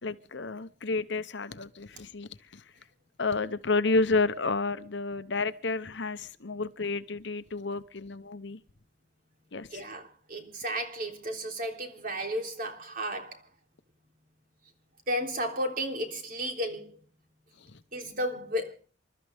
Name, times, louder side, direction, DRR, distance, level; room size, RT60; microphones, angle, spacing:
voice 1, 0.0-2.6 3.2-8.6 9.5-9.8 17.6-17.8, left 3 dB, 60° left, 0.9 m, -31 dB
voice 2, 9.7-13.5 15.1-17.0 17.9-18.7, equal, 45° right, 3.4 m, -33 dB
28.5 x 13.0 x 3.5 m
head